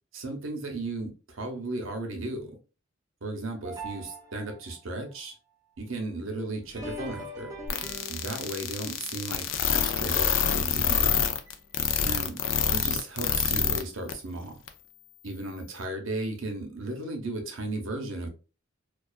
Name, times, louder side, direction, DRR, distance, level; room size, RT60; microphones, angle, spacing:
voice 1, 0.1-2.5 3.2-5.3 5.8-7.5 8.1-11.4 12.0-12.4 12.7-14.6 15.2-18.3, right 2 dB, 75° right, 0.7 m, -35 dB
sound 1, 3.6-4.8 6.6-11.0 11.5-11.6 12.4-12.5 13.3-13.4, right 1 dB, 20° right, 0.5 m, -43 dB
sound 2, 7.7-13.8 14.1-14.2 14.7-14.8, left 8 dB, 65° left, 0.4 m, -26 dB
2.4 x 2.3 x 2.3 m
head